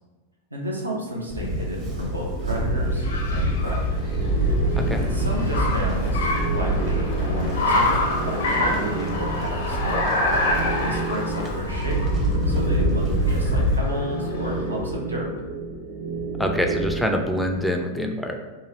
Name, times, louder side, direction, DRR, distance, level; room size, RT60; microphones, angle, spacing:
voice 1, 0.5-3.9 4.7-7.9 8.2-10.0 10.5-12.1 12.5-15.3, equal, 80° right, -2 dB, 0.6 m, -32 dB
sound 1, 0.8-17.6, right 3 dB, 50° right, 1.0 m, -32 dB
Livestock farm animals working animals, 1.3-13.8, right 1 dB, 30° right, 0.6 m, -26 dB
Car, 1.9-14.8, left 2 dB, 60° left, 0.5 m, -28 dB
voice 2, 16.4-18.4, equal, ahead, 3 dB, 0.3 m, -25 dB
2.9 x 2.5 x 2.8 m, 1.3 s
figure-of-eight pair, 90°, 0 cm